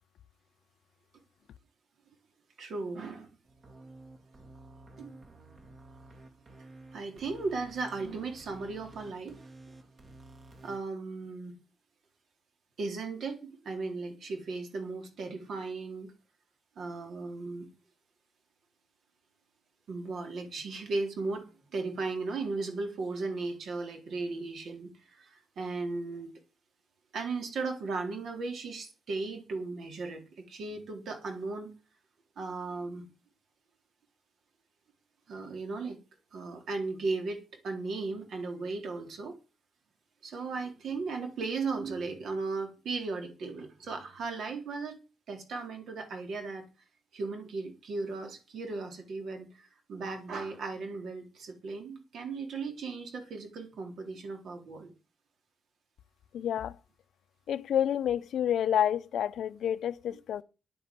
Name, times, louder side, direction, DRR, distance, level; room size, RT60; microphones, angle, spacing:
voice 1, 2.6-3.3 5.0-5.1 6.9-9.4 10.6-11.6 12.8-16.1 16.8-17.7 19.9-26.3 27.1-31.7 32.4-33.1 35.3-36.0 36.3-39.4 40.2-45.0 45.3-46.7 47.1-54.9, right 3 dB, 65° right, 3.7 m, -36 dB
sound 1, 3.4-10.8, right 2 dB, 45° right, 3.0 m, -52 dB
voice 2, 56.3-56.8 57.5-60.4, left 10 dB, 90° left, 0.8 m, -29 dB
11.0 x 8.9 x 7.7 m
wide cardioid pair, 170°, 0 cm